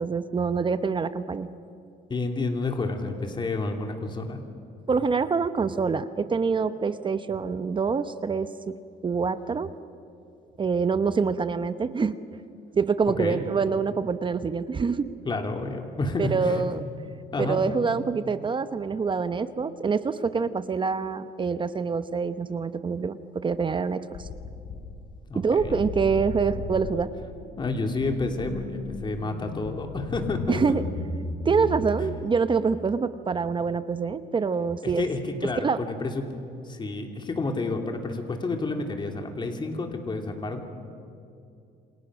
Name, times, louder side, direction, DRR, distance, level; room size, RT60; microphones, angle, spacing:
voice 1, 0.0-1.5 4.9-8.7 9.0-9.7 10.6-12.2 12.8-15.1 16.2-16.8 17.4-24.3 25.3-27.1 30.5-30.8 31.4-35.0 35.6-35.8, right 5 dB, 30° right, 12 dB, 0.9 m, -26 dB
voice 2, 2.1-4.4 13.1-13.4 15.2-16.7 17.3-17.6 25.3-25.8 27.6-30.8 34.8-36.3 36.6-40.7, left 3 dB, 25° left, 4 dB, 3.0 m, -30 dB
sound 1, 24.1-25.2 25.6-32.2, left 3 dB, 60° left, 4.4 m, -35 dB
28.5 x 27.0 x 6.3 m, 2.6 s
cardioid pair, 110°, 17 cm